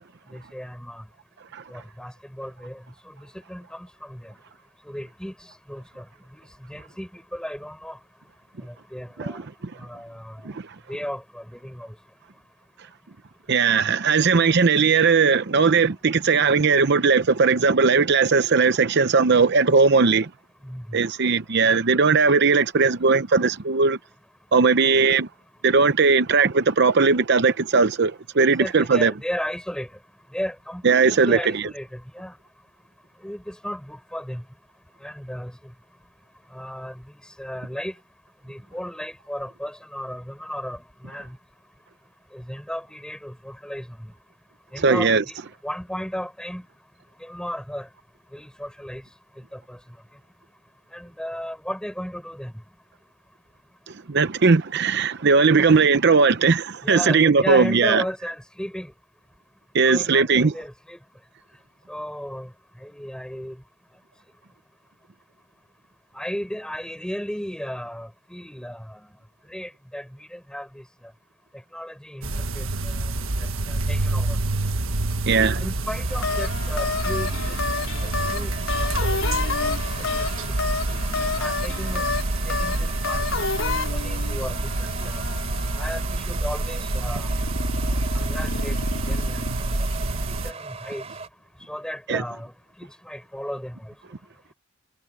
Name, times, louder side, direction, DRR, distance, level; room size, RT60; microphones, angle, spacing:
voice 1, 0.3-1.0 1.7-4.3 4.9-6.0 6.7-8.0 8.6-9.4 9.8-10.4 10.9-11.9 20.6-21.0 28.6-29.9 30.3-32.3 33.2-34.4 35.0-35.5 36.5-37.0 37.4-37.9 38.5-41.4 42.3-44.1 44.7-45.4 45.6-46.6 47.2-47.9 48.3-49.0 49.5-49.8 50.9-52.5 55.6-55.7 56.8-58.9 59.8-61.0 61.9-62.5 62.8-63.6 66.1-69.0 69.5-70.8 71.7-73.1 73.4-74.4 75.6-77.8 78.3-78.5 78.8-79.5 80.2-80.6 81.4-82.1 82.5-83.3 83.7-85.2 85.8-87.3 87.9-88.8 89.1-89.9 90.4-91.0 91.7-92.5 92.8-93.9, equal, 5° left, 4.9 m, -35 dB
voice 2, 13.5-20.3 20.9-24.0 24.5-25.3 25.6-29.1 30.8-31.6 44.8-45.2 54.1-58.0 59.7-60.5 75.3-75.6 92.1-92.2, right 4 dB, 55° right, 0.7 m, -18 dB
sound 1, 72.2-90.5, right 2 dB, 85° right, 1.5 m, -27 dB
sound 2, 75.2-91.3, right 4 dB, 30° right, 3.1 m, -40 dB
sound 3, 76.1-86.0 87.2-89.5, left 4 dB, 75° left, 4.2 m, -30 dB
head